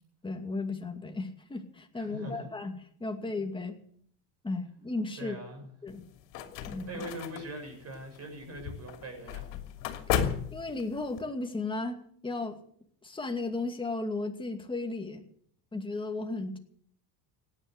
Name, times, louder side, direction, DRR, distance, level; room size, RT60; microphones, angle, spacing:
voice 1, 0.2-3.8 4.4-5.4 5.8-6.0 6.7-7.0 10.5-12.6 13.0-15.2 15.7-16.6, left 3 dB, 10° left, 4 dB, 2.3 m, -35 dB
voice 2, 2.0-2.5 5.2-5.7 6.6-9.4, right 1 dB, 35° right, 4 dB, 7.0 m, -42 dB
sound 1, 5.9-11.2, left 9 dB, 75° left, 2.8 m, -35 dB
17.0 x 10.0 x 8.1 m, 0.62 s
supercardioid pair, 120°, 44 cm